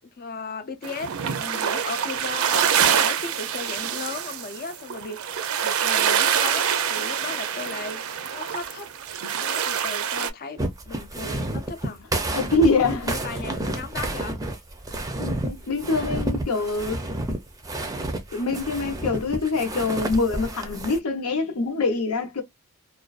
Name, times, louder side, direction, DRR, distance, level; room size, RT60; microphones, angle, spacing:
voice 1, 0.2-8.9 9.4-12.0 13.0-14.4, left 4 dB, 45° left, 0.4 m, -36 dB
sound 1, 0.8-10.3, right 8 dB, 70° right, 0.5 m, -25 dB
sound 2, 10.6-21.0, right 1 dB, 15° right, 0.4 m, -30 dB
voice 2, 12.3-13.1 15.2-17.0 18.3-22.4, left 3 dB, 90° left, 0.8 m, -24 dB
2.5 x 2.2 x 2.3 m
head